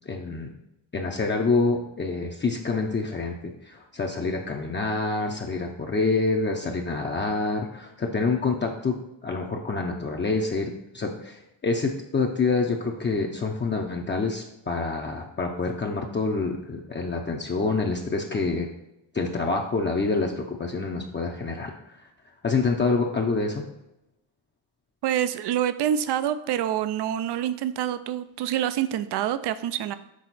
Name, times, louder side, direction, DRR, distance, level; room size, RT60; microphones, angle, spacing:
voice 1, 0.1-0.5 0.9-3.3 3.6-8.9 9.2-18.7 19.1-21.7 22.4-23.6, left 3 dB, 25° left, 0 dB, 0.6 m, -27 dB
voice 2, 25.0-29.9, right 10 dB, 65° right, 12 dB, 0.5 m, -26 dB
6.2 x 3.7 x 4.1 m, 0.88 s
cardioid pair, 95°, 44 cm